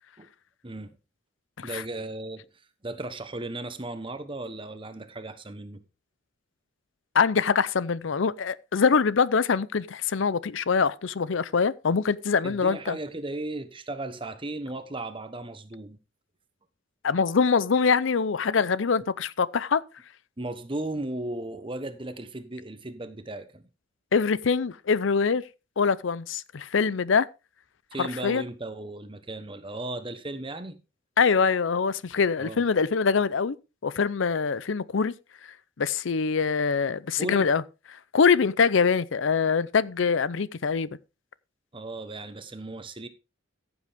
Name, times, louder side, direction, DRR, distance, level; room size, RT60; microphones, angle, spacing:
voice 1, 0.6-1.0 1.6-2.5 2.8-5.8 12.4-16.0 20.4-23.6 27.9-30.8 32.4-32.6 37.2-37.5 41.7-43.1, right 2 dB, 25° right, 1.1 m, -36 dB
voice 2, 7.1-13.0 17.0-19.8 24.1-25.4 25.8-27.3 28.0-28.4 31.2-33.6 33.8-35.1 35.8-37.6 38.1-40.9, left 5 dB, 70° left, 0.6 m, -24 dB
14.5 x 7.9 x 3.6 m
head